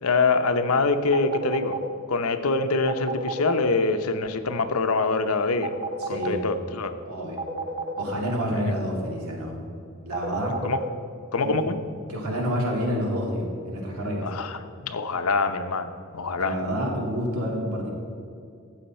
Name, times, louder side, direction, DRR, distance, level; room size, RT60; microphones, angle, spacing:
voice 1, 0.0-1.8 2.1-5.7 6.1-6.9 8.5-8.6 10.6-10.8 11.3-11.8 14.2-16.6, left 3 dB, 75° left, 9 dB, 0.7 m, -25 dB
sound 1, 1.1-1.9 2.9-3.6 5.6-6.4 7.4-8.1 10.1-10.9, right 2 dB, 25° right, 0.8 m, -30 dB
voice 2, 6.0-6.5 7.0-7.4 8.0-9.6 10.0-10.5 11.4-11.6 12.1-14.3 16.4-17.9, equal, 85° right, -1 dB, 2.4 m, -28 dB
13.5 x 7.8 x 4.3 m, 2.5 s
head